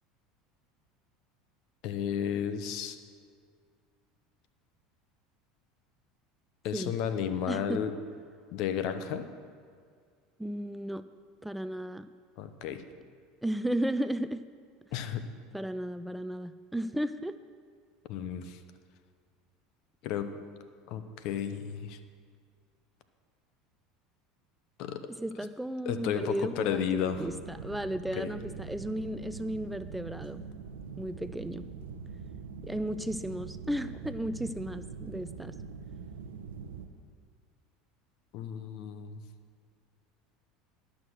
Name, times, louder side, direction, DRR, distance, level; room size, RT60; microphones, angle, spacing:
voice 1, 1.8-3.0 6.6-7.9 8.5-9.3 12.4-12.8 14.9-15.2 18.1-18.6 20.0-20.3 20.9-22.0 24.8-25.0 25.9-27.3 28.2-28.3 38.3-39.2, left 9 dB, 60° left, 10 dB, 0.8 m, -33 dB
voice 2, 7.5-7.8 10.4-11.0 11.4-12.1 13.4-14.4 15.5-17.4 25.1-30.4 31.0-31.7 32.6-35.5, right 1 dB, 5° right, 12 dB, 0.3 m, -34 dB
sound 1, 27.1-36.9, right 6 dB, 85° right, 0.7 m, -43 dB
11.5 x 6.3 x 6.2 m, 2.1 s
hypercardioid pair, 85°, 0 cm